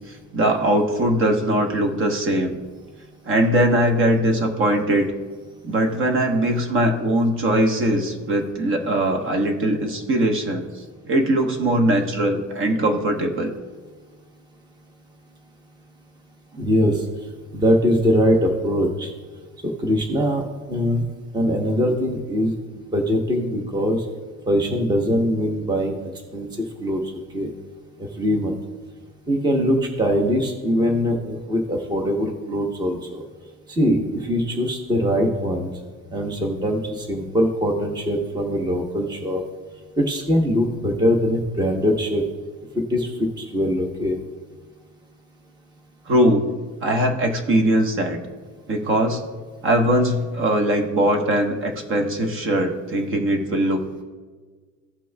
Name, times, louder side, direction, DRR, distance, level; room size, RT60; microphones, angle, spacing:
voice 1, 0.3-2.5 3.2-5.1 5.6-10.6 11.0-13.5 46.1-46.5 46.8-48.2 48.7-49.2 49.6-54.0, right 1 dB, 40° right, 3 dB, 1.1 m, -21 dB
voice 2, 16.5-17.0 17.5-19.1 19.8-20.4 20.7-21.0 21.3-24.0 24.5-26.0 26.3-26.5 26.8-27.0 27.3-27.5 28.0-28.6 29.3-33.2 33.7-35.7 36.1-39.4 40.0-42.2 42.9-44.2, equal, 15° right, 2 dB, 0.9 m, -22 dB
16.0 x 6.1 x 2.3 m, 1.5 s
cardioid pair, 145°, 31 cm